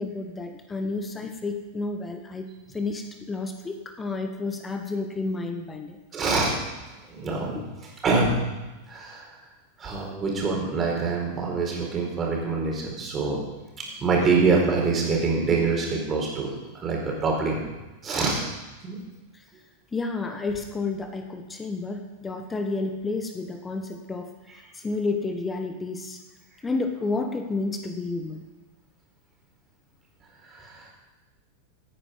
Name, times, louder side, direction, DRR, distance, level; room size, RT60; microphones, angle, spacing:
voice 1, 0.0-2.5 2.7-6.0 7.5-7.6 19.9-24.3 24.8-26.2 26.6-28.4, left 3 dB, 15° left, 6 dB, 1.3 m, -30 dB
voice 2, 6.1-6.6 7.1-7.6 8.0-8.4 8.9-9.4 9.8-13.4 14.0-17.6 18.0-18.4 18.8-19.0 30.5-30.9, right 4 dB, 25° right, -1 dB, 4.4 m, -25 dB
16.5 x 9.8 x 5.3 m, 1.1 s
figure-of-eight pair, 90°, 0 cm